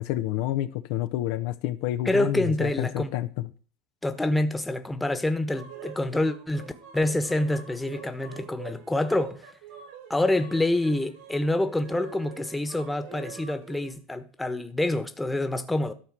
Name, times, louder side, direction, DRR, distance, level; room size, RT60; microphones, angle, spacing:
voice 1, 0.0-3.3, left 14 dB, 70° left, 0.7 m, -29 dB
voice 2, 2.0-3.1 4.0-9.4 10.1-15.9, left 1 dB, 10° left, 1.3 m, -27 dB
sound 1, 5.5-13.9, right 7 dB, 80° right, 4.1 m, -45 dB
13.0 x 4.4 x 7.4 m
supercardioid pair, 100°, 0 cm